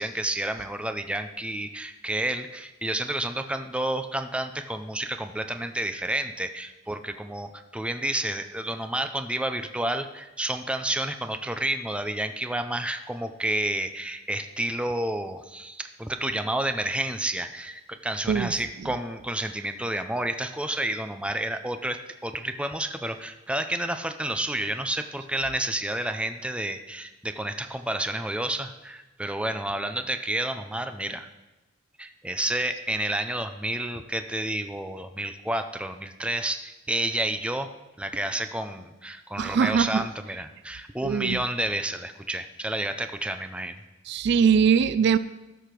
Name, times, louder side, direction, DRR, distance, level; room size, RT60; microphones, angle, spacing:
voice 1, 0.0-31.3 32.0-37.7 38.0-43.8, right 1 dB, 5° right, 9 dB, 0.5 m, -30 dB
voice 2, 39.4-40.0 41.0-41.4 44.1-45.2, right 6 dB, 60° right, 15 dB, 0.3 m, -22 dB
13.0 x 5.0 x 5.9 m, 1.1 s
head